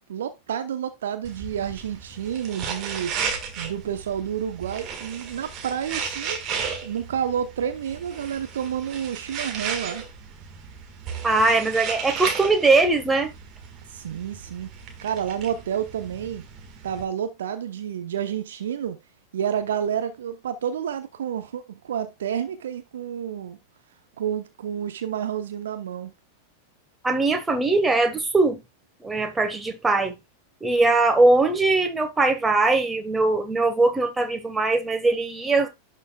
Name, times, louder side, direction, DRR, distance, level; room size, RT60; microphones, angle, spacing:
voice 1, 0.1-3.1 3.6-6.4 6.8-10.0 13.9-14.7 15.0-16.4 16.8-19.0 19.3-23.6 24.2-26.1, right 9 dB, 60° right, 0.8 m, -29 dB
sound 1, 1.2-17.0, right 6 dB, 35° right, 1.6 m, -35 dB
voice 2, 11.2-13.3 27.0-28.6 29.0-30.1 30.6-35.7, right 3 dB, 10° right, 1.4 m, -21 dB
11.5 x 4.4 x 2.3 m
figure-of-eight pair, 90°, 0 cm